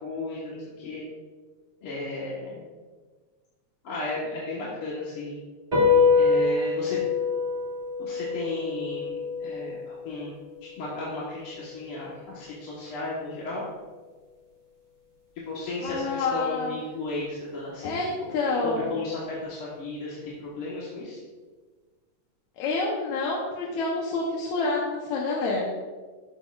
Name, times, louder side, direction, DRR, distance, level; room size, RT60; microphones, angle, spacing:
voice 1, 0.0-1.0 1.8-2.6 3.8-5.4 6.1-7.0 8.0-10.3 10.6-13.6 15.5-18.0 18.6-21.2, left 2 dB, 55° left, -6 dB, 2.0 m, -34 dB
sound 1, 5.7-12.4, left 5 dB, 20° right, 1.5 m, -26 dB
voice 2, 15.8-16.8 17.8-18.9 22.6-25.7, left 3 dB, 85° left, -3 dB, 2.3 m, -28 dB
12.0 x 6.4 x 2.4 m, 1.4 s
omnidirectional pair, 3.3 m